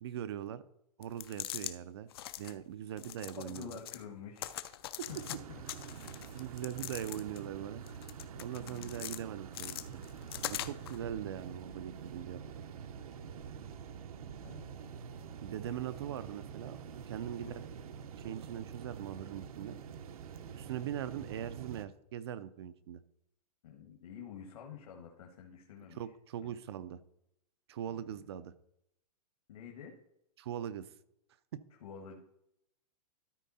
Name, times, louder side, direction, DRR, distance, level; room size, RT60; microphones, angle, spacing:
voice 1, 0.0-0.6 1.0-2.1 2.4-3.8 5.0-5.1 6.3-7.8 8.4-9.8 10.4-12.4 15.4-16.8 17.1-17.6 18.2-19.8 20.5-23.0 25.9-27.0 27.7-28.5 30.4-30.9 31.5-31.6, right 10 dB, 40° right, 14 dB, 0.5 m, -41 dB
sound 1, 1.0-1.7 2.1-2.5 3.0-4.0 4.4-5.4 5.7-7.5 7.9-9.2 9.5-11.0, left 12 dB, 40° left, 0.4 m, -42 dB
voice 2, 3.4-4.5 5.1-5.6 8.6-9.1 14.4-14.7 17.4-17.6 23.6-26.0 26.4-26.6 27.9-28.3 29.5-29.9 31.8-32.2, left 7 dB, 60° left, 1 dB, 1.4 m, -48 dB
sound 2, 5.1-21.9, right 7 dB, 65° right, 0.8 m, -47 dB
13.0 x 4.6 x 4.2 m, 0.78 s
supercardioid pair, 180°, 20 cm